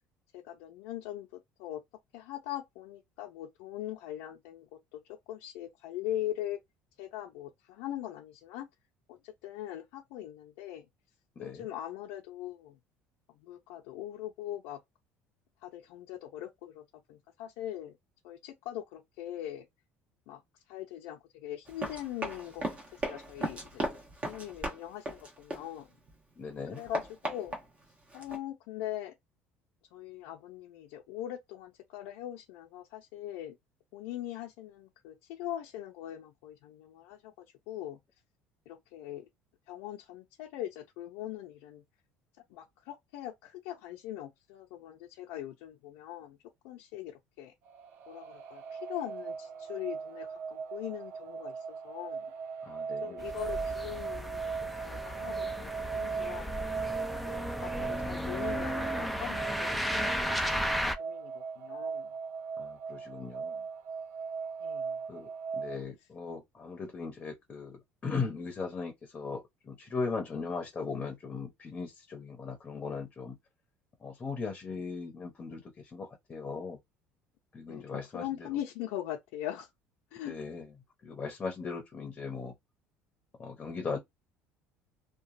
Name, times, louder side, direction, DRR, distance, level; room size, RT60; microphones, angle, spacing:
voice 1, 0.3-1.8 2.1-5.0 5.3-6.6 7.0-8.7 9.1-10.8 11.4-12.8 13.4-14.8 15.6-16.8 17.1-18.0 18.2-19.7 20.3-20.4 20.7-23.9 24.2-25.9 26.7-27.6 28.1-29.1 29.9-33.6 33.9-38.0 38.7-39.3 39.7-41.8 42.5-46.4 46.6-47.5 48.1-52.3 53.0-56.5 57.2-62.1 64.6-65.0 77.7-79.7 80.1-80.4, left 12 dB, 85° left, 0.6 m, -41 dB
Run, 21.6-26.1 26.5-28.4, right 1 dB, 30° right, 1.1 m, -37 dB
voice 2, 26.4-26.8 52.7-53.2 62.6-63.6 65.1-65.3 65.5-73.3 74.0-75.6 75.9-76.8 77.5-78.2 80.3-80.6 81.0-82.5 83.4-84.0, left 4 dB, 25° left, 0.8 m, -38 dB
sound 1, 47.7-65.8, right 5 dB, 60° right, 0.6 m, -38 dB
sound 2, 53.2-61.0, equal, ahead, 0.4 m, -35 dB
2.9 x 2.3 x 2.5 m
cardioid pair, 110°, 4 cm